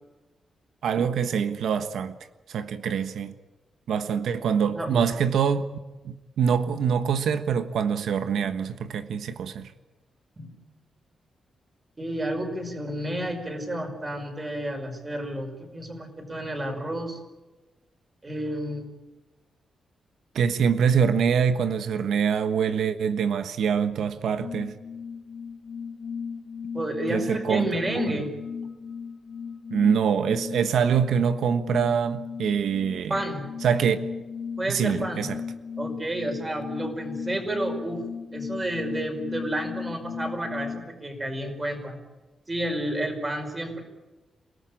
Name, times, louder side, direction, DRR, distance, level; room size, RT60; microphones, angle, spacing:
voice 1, 0.8-2.2 2.5-3.3 3.9-5.7 6.0-9.7 20.3-24.7 27.1-27.7 28.1-28.2 29.7-33.2 33.6-34.0 34.7-35.3, right 7 dB, 80° right, 1.3 m, -24 dB
voice 2, 12.0-17.2 18.2-18.8 26.7-28.3 33.1-33.5 34.6-35.3 35.8-38.0 38.3-42.0 42.5-43.8, right 1 dB, 20° right, 5.4 m, -31 dB
sound 1, 24.4-40.9, left 6 dB, 60° left, 3.1 m, -36 dB
28.5 x 18.5 x 8.7 m
wide cardioid pair, 165°, 0 cm